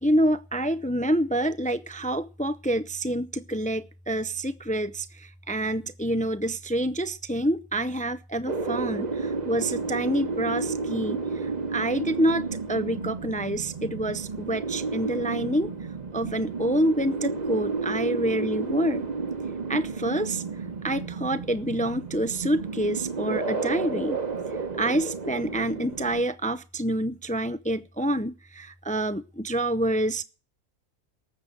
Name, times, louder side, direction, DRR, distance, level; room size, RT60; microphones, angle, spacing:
voice 1, 0.0-15.7 16.1-19.0 19.7-20.4 20.8-24.2 24.8-30.2, right 1 dB, 15° left, 0.3 m, -27 dB
sound 1, 8.5-26.2, right 4 dB, 30° right, 1.2 m, -32 dB
18.5 x 7.6 x 6.6 m
omnidirectional pair, 1.4 m